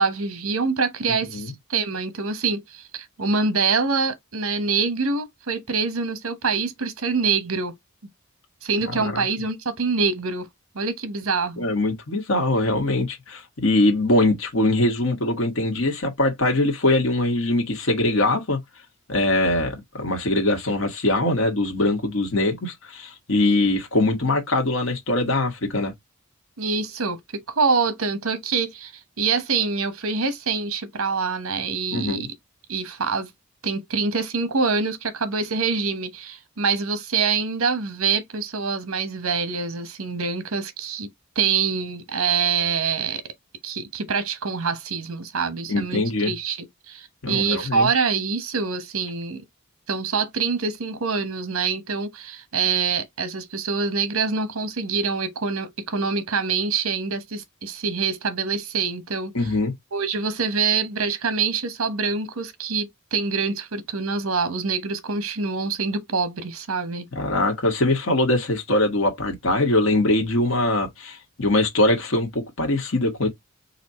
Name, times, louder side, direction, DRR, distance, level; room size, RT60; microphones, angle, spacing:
voice 1, 0.0-7.7 8.6-10.5 10.7-11.7 26.6-27.2 27.5-32.3 32.7-33.3 33.6-41.1 41.4-43.2 43.6-49.4 49.9-59.3 59.9-67.1, right 5 dB, 80° right, 1.0 m, -25 dB
voice 2, 8.9-9.2 11.6-18.6 19.1-25.9 31.9-32.3 45.7-46.3 47.2-47.9 59.3-59.7 67.1-73.3, left 2 dB, 70° left, 1.4 m, -22 dB
4.2 x 2.4 x 4.1 m
head